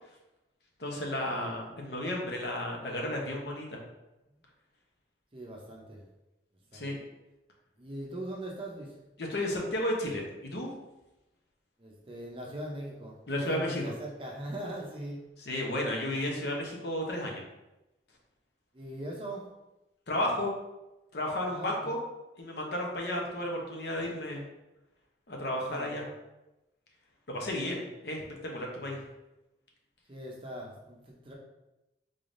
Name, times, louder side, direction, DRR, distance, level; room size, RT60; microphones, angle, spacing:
voice 1, 0.8-3.8 6.7-7.0 9.2-10.7 13.3-13.9 15.5-17.4 20.1-20.5 21.1-22.0 22.4-24.4 25.3-26.0 27.3-29.0, left 1 dB, 70° left, 0 dB, 0.8 m, -33 dB
voice 2, 1.3-1.6 5.3-6.1 6.7-6.9 7.8-9.0 11.8-15.2 18.7-19.4 21.5-22.0 25.5-26.0 28.8-29.0 30.1-31.3, right 1 dB, 30° right, -2 dB, 0.6 m, -41 dB
3.8 x 3.4 x 2.6 m, 0.99 s
head